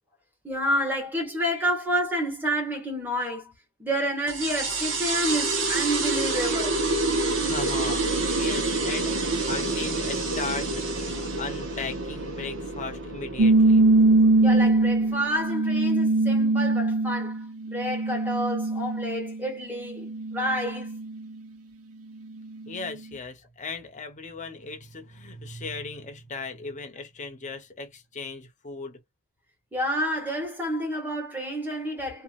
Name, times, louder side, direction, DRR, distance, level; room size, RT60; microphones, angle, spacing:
voice 1, 0.4-3.5 3.8-6.8 14.3-20.9 29.7-32.2, equal, 10° right, 1.4 m, -29 dB
sound 1, 4.3-15.3, right 3 dB, 60° right, 1.0 m, -28 dB
voice 2, 7.4-9.1 9.5-11.1 11.4-13.9 22.7-29.0, left 4 dB, 35° left, 0.8 m, -37 dB
sound 2, 13.4-19.4 19.9-21.2, right 2 dB, 80° right, 0.7 m, -22 dB
2.9 x 2.5 x 2.5 m
head